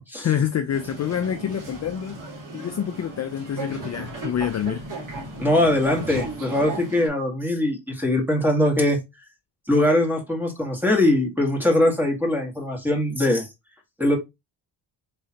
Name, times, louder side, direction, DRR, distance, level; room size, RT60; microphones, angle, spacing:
voice 1, 0.2-2.2 2.5-4.8, left 9 dB, 35° left, 0.5 m, -27 dB
sound 1, 0.7-7.1, right 2 dB, 40° right, 2.0 m, -36 dB
voice 2, 5.4-9.0 9.7-13.5 14.0-14.2, left 1 dB, 5° right, 1.8 m, -21 dB
3.8 x 3.1 x 2.9 m
supercardioid pair, 65°, 46 cm